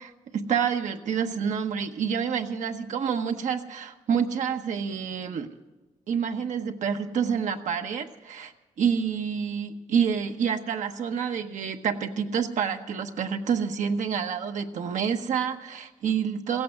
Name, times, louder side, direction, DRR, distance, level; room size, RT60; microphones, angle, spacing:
voice 1, 0.0-5.5 6.1-8.5 8.8-16.6, right 7 dB, 80° right, 5 dB, 1.0 m, -28 dB
16.0 x 8.5 x 9.5 m, 1.1 s
cardioid pair, 55°, 12 cm